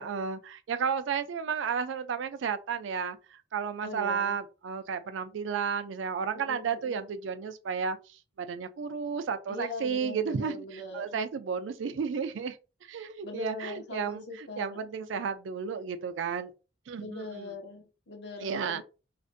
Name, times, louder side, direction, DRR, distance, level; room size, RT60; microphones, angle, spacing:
voice 1, 0.0-12.6 12.8-16.5 16.9-17.5 18.4-18.8, right 6 dB, 80° right, 0.4 m, -33 dB
voice 2, 3.8-4.4 6.3-7.0 9.5-11.2 13.2-14.8 17.0-18.8, left 2 dB, 60° left, 0.7 m, -41 dB
2.5 x 2.1 x 2.5 m
head